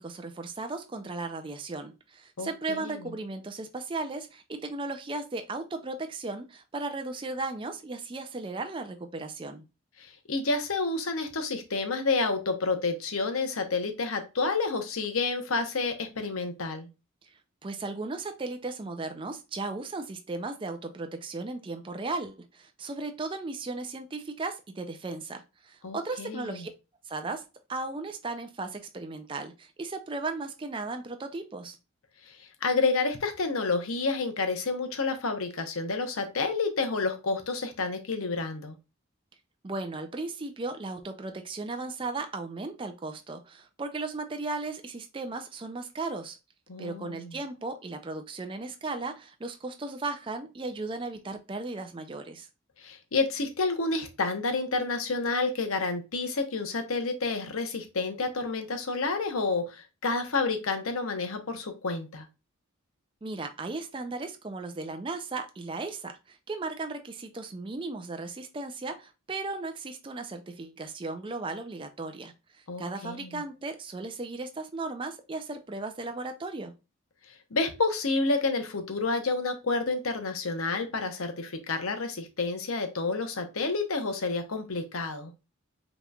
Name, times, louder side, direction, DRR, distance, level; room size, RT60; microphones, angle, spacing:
voice 1, 0.0-9.6 17.2-26.7 27.1-27.4 27.7-31.8 39.6-46.4 46.8-52.5 63.2-76.7, right 3 dB, 25° right, 0.4 m, -36 dB
voice 2, 2.4-3.1 10.0-16.9 25.8-26.7 32.2-38.7 46.7-47.4 52.8-62.3 72.7-73.4 77.3-85.3, left 3 dB, 75° left, 0.8 m, -29 dB
5.2 x 3.0 x 2.3 m
head